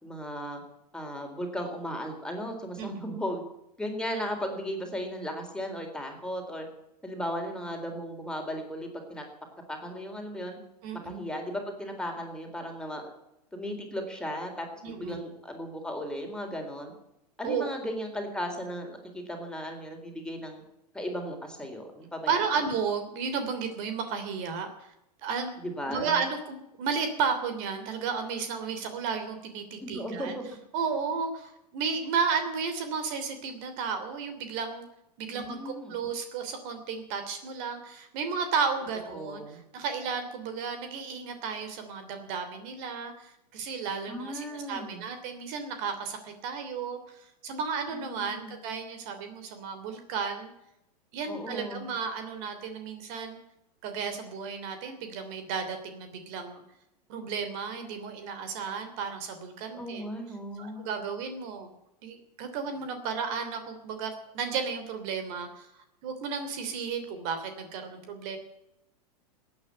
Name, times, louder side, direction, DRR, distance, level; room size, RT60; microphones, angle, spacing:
voice 1, 0.0-0.6 0.9-3.4 3.8-6.7 7.0-9.2 9.7-10.6 11.0-13.1 13.5-16.9 17.4-20.6 20.9-22.3 25.6-26.2 29.8-30.4 35.3-36.0 39.1-39.6 44.1-45.0 47.9-48.6 51.3-51.9 59.7-60.9, equal, 5° left, 2 dB, 4.0 m, -36 dB
voice 2, 10.8-11.2 14.8-15.2 17.4-17.7 22.3-24.9 25.2-25.6 25.9-30.3 30.7-34.8 35.2-50.5 51.1-53.4 53.8-56.6 57.1-60.1 60.6-61.7 62.0-65.7 66.0-68.4, right 5 dB, 50° right, 8 dB, 3.0 m, -33 dB
15.5 x 9.5 x 9.6 m, 0.84 s
hypercardioid pair, 115°, 21 cm